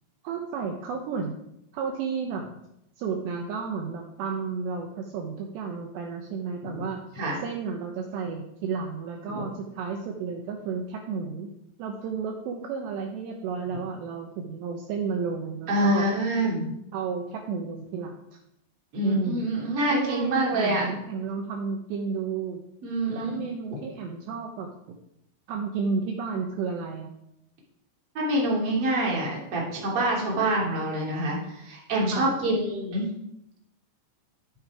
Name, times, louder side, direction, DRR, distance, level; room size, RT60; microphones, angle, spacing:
voice 1, 0.2-1.4 1.7-2.4 3.0-7.0 7.4-11.5 11.8-16.1 16.9-18.1 19.0-19.5 19.9-22.6 23.1-25.0 25.5-27.1 32.1-32.3, right 5 dB, 75° right, 1 dB, 2.9 m, -32 dB
voice 2, 15.7-16.7 18.9-20.9 22.8-23.4 28.1-33.1, right 1 dB, 35° right, -3 dB, 3.1 m, -26 dB
13.0 x 7.1 x 4.8 m, 0.80 s
omnidirectional pair, 5.5 m